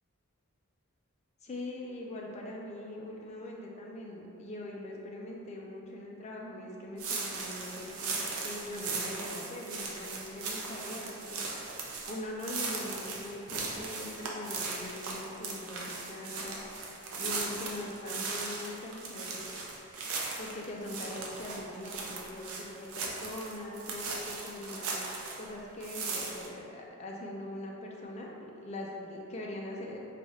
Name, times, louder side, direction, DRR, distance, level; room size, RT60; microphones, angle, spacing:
voice 1, 1.4-11.4 12.1-16.6 17.2-19.6 20.4-25.0 25.4-30.0, left 1 dB, 30° left, -1 dB, 0.4 m, -42 dB
sound 1, 7.0-25.5 25.8-26.5, right 4 dB, 75° right, 0.5 m, -38 dB
3.3 x 2.3 x 4.0 m, 2.7 s
head